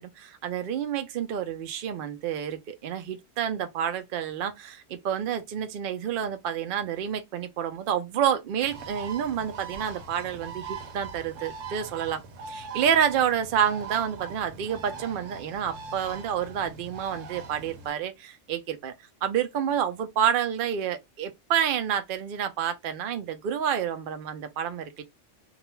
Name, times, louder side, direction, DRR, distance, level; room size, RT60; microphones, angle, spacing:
voice 1, 0.0-12.2 12.5-18.9 19.2-25.0, right 8 dB, 60° right, 0.6 m, -29 dB
Bird, 8.6-17.9, right 5 dB, 90° right, 1.0 m, -41 dB
2.4 x 2.2 x 2.9 m
omnidirectional pair, 1.3 m